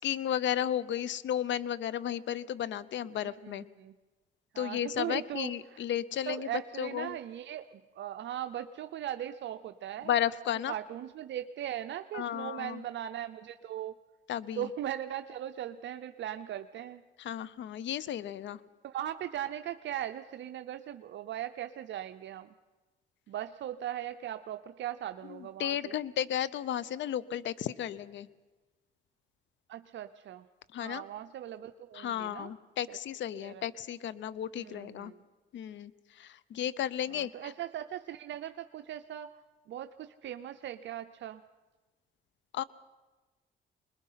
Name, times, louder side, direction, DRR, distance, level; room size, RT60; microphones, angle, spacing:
voice 1, 0.0-3.6 4.6-6.5 6.8-7.1 10.0-10.7 12.1-12.8 14.3-14.7 17.2-18.6 25.6-28.3 30.7-31.0 31.9-35.1 35.5-37.5 42.5-42.6, left 10 dB, 70° left, 19 dB, 0.7 m, -33 dB
voice 2, 3.2-3.9 4.5-5.8 6.3-10.1 10.7-14.0 14.6-17.0 18.8-22.5 23.3-25.9 29.7-30.5 30.8-32.5 32.9-33.0 33.3-33.7 34.6-35.2 37.1-39.3 39.7-41.4, right 11 dB, 65° right, 8 dB, 0.7 m, -39 dB
25.5 x 21.0 x 5.7 m, 1.2 s
cardioid pair, 90°, 20 cm